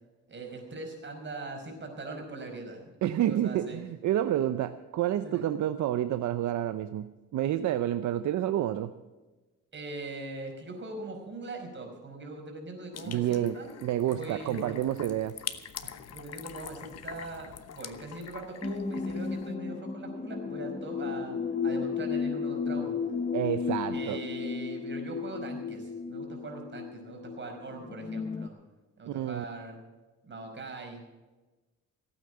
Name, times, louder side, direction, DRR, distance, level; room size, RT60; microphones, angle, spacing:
voice 1, 0.3-2.9 3.2-3.8 5.2-5.5 9.7-13.7 14.1-15.1 15.8-23.0 23.9-28.5 29.0-29.8 30.2-31.1, right 2 dB, 40° right, 3 dB, 5.0 m, -41 dB
voice 2, 3.0-8.9 13.1-15.4 23.3-24.2 29.1-29.4, right 12 dB, 70° right, 11 dB, 0.7 m, -29 dB
sound 1, 12.9-19.5, left 9 dB, 55° left, 1.1 m, -44 dB
sound 2, 18.6-28.5, left 5 dB, 25° left, 0.7 m, -34 dB
17.0 x 9.0 x 7.9 m, 1.2 s
cardioid pair, 90°, 30 cm